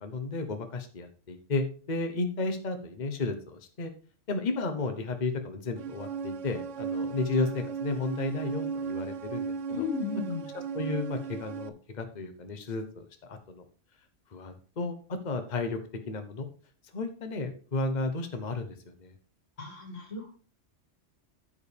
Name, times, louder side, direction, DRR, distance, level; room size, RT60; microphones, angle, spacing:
voice 1, 0.0-3.9 4.3-9.9 10.5-13.6 14.3-15.8 16.1-16.5 16.9-19.1, left 3 dB, 40° left, 7 dB, 1.2 m, -33 dB
sound 1, 5.8-11.7, right 5 dB, 80° right, 1.0 m, -36 dB
voice 2, 9.7-10.5 19.6-20.3, left 6 dB, 90° left, 2 dB, 2.7 m, -34 dB
14.0 x 5.0 x 3.4 m, 0.39 s
omnidirectional pair, 1.2 m